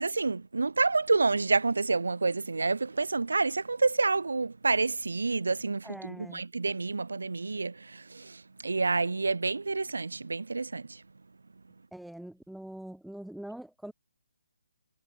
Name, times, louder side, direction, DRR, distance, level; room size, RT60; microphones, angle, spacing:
voice 1, 0.0-11.0, right 3 dB, 70° right, 0.4 m, -28 dB
voice 2, 5.8-6.4 11.9-13.9, right 1 dB, ahead, 0.4 m, -43 dB
figure-of-eight pair, 140°, 0 cm